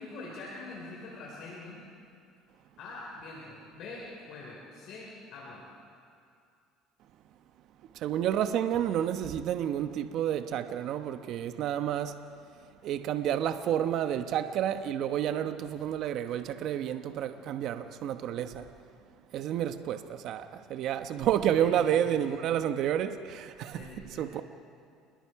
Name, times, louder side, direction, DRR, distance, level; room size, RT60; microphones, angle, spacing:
voice 1, 0.0-1.8 2.8-5.6 21.6-22.4 23.7-24.3, left 3 dB, 60° left, 4.7 m, -44 dB
voice 2, 7.9-12.2 12.8-18.6 19.3-24.4, right 10 dB, 60° right, 1.0 m, -30 dB
29.0 x 21.0 x 4.8 m
supercardioid pair, 105°, 0 cm